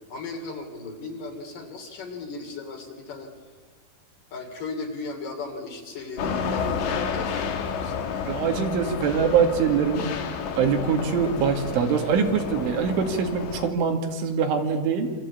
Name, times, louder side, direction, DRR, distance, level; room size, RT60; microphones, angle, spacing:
voice 1, 0.0-3.3 4.3-8.2, left 3 dB, 50° left, 3 dB, 4.1 m, -36 dB
sound 1, 6.2-13.7, left 6 dB, 70° left, 4.1 m, -30 dB
voice 2, 8.3-10.1 10.6-15.1, right 6 dB, 80° right, 4 dB, 4.7 m, -23 dB
27.5 x 25.5 x 8.4 m, 1.4 s
omnidirectional pair, 5.5 m